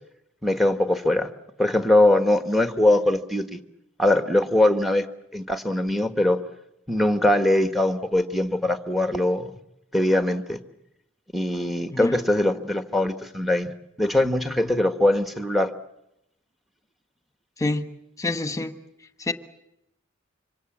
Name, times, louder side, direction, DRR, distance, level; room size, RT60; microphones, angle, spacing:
voice 1, 0.4-1.3 1.6-3.6 4.0-5.0 5.3-6.4 6.9-9.5 9.9-10.6 11.3-13.7 14.0-15.7, left 1 dB, ahead, 1.4 m, -21 dB
voice 2, 17.6-17.9 18.2-18.7 19.2-19.3, left 2 dB, 15° left, 1.4 m, -26 dB
26.5 x 25.0 x 7.4 m
head